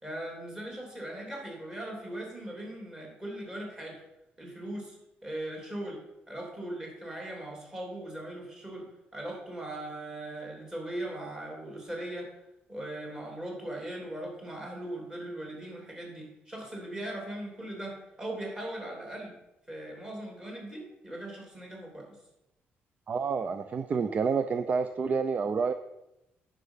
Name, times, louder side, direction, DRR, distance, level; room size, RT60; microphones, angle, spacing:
voice 1, 0.0-4.0 4.4-5.0 5.2-6.0 6.3-8.9 9.1-12.3 12.7-19.4 19.7-22.2, right 1 dB, 15° right, -1 dB, 3.1 m, -39 dB
voice 2, 23.1-25.7, right 5 dB, 35° right, 10 dB, 0.5 m, -28 dB
9.8 x 6.7 x 5.6 m, 0.91 s
cardioid pair, 140°, 4 cm